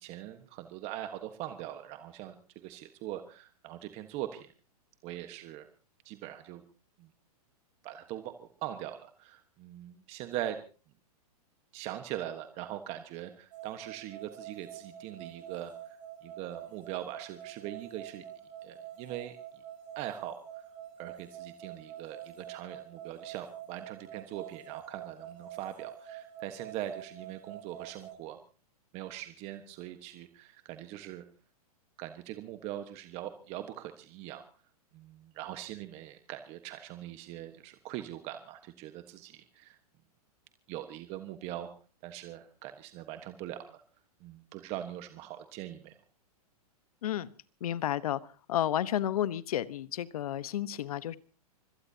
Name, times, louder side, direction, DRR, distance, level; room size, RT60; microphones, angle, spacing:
voice 1, 0.0-2.4 2.6-4.5 5.0-5.7 6.0-6.6 7.0-7.1 7.8-10.6 11.7-16.0 16.2-18.2 18.6-19.4 19.9-20.4 21.0-28.4 28.9-31.2 32.0-34.5 34.9-39.8 40.7-41.7 42.0-43.8 44.2-45.9, right 12 dB, 30° right, 8 dB, 1.3 m, -41 dB
sound 1, 13.5-28.1, right 10 dB, 50° right, 6.6 m, -47 dB
voice 2, 47.6-48.2 48.5-51.2, left 11 dB, 70° left, 16 dB, 1.1 m, -31 dB
25.0 x 17.5 x 2.8 m, 0.37 s
hypercardioid pair, 145°, 20 cm